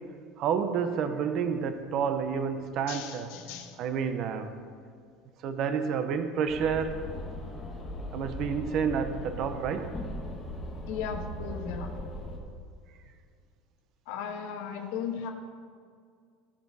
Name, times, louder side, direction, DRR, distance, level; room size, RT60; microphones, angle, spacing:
voice 1, 0.4-3.3 3.8-4.5 5.4-7.0 8.1-9.9, right 6 dB, 40° right, 8 dB, 0.7 m, -29 dB
voice 2, 2.9-3.8 10.9-11.9 14.1-15.3, left 7 dB, 70° left, 3 dB, 1.3 m, -36 dB
sound 1, 6.5-12.4, left 1 dB, 15° left, 1.4 m, -38 dB
17.5 x 6.1 x 4.1 m, 2.2 s
cardioid pair, 165°, 0 cm